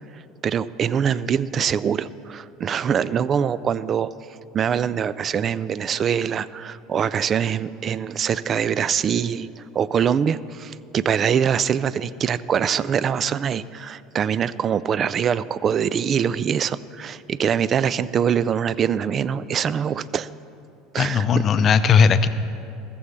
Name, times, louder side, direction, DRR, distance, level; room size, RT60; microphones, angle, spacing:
voice 1, 0.1-4.1 4.5-20.3 20.9-21.3 21.6-21.7, right 8 dB, 40° right, 17 dB, 0.3 m, -23 dB
voice 2, 21.0-22.3, left 6 dB, 40° left, 12 dB, 0.6 m, -17 dB
14.0 x 7.1 x 6.6 m, 2.6 s
hypercardioid pair, 75°, 0 cm